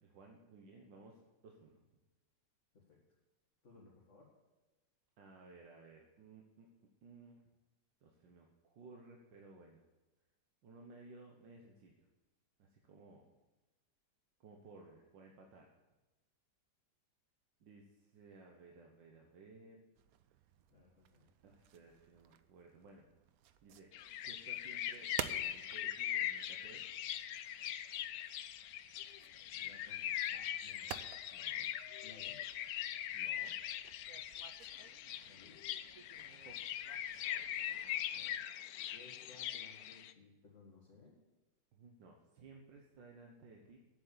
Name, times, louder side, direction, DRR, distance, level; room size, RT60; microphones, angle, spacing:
voice 1, 0.0-1.8 5.2-7.4 8.0-9.8 10.6-12.1 12.6-13.3 14.4-15.7 17.6-19.8 21.4-23.1 23.6-23.9 24.2-26.9 31.3-31.7 33.1-33.6 36.3-36.7 41.7-43.8, right 3 dB, 85° right, 1 dB, 1.8 m, -58 dB
voice 2, 3.6-4.3 20.7-21.3 29.5-31.0 32.0-32.4 35.3-35.6 38.1-38.4 38.9-41.2, left 3 dB, 40° left, -4 dB, 2.1 m, -61 dB
sound 1, 20.0-38.0, right 10 dB, 70° right, 0.9 m, -53 dB
sound 2, 23.9-40.1, left 11 dB, 70° left, 0.9 m, -41 dB
8.4 x 7.9 x 8.3 m, 1.2 s
omnidirectional pair, 1.9 m